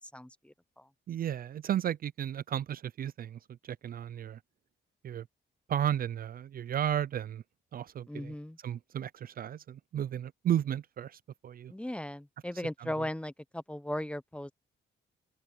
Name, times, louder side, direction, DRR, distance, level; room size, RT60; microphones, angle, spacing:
voice 1, 0.1-0.9 8.1-8.6 11.7-14.5, left 1 dB, 5° left, 0.8 m, -37 dB
voice 2, 1.1-4.4 5.0-5.3 5.7-7.4 7.7-8.3 8.6-11.7 13.0-13.1, right 10 dB, 50° right, 0.4 m, -34 dB
open air
cardioid pair, 90°, 20 cm